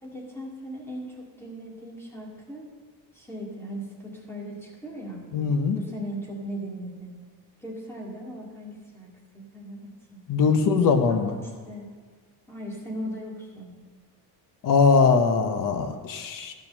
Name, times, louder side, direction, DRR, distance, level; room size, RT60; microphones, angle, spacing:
voice 1, 0.0-2.7 3.1-5.2 5.7-7.1 7.6-9.1 9.3-10.7 11.1-11.9 12.5-13.7, equal, 5° left, -3 dB, 2.1 m, -38 dB
voice 2, 5.3-5.8 10.3-11.4 14.6-16.5, left 5 dB, 50° left, 7 dB, 1.0 m, -21 dB
13.0 x 6.1 x 6.6 m, 1.5 s
cardioid pair, 165°, 41 cm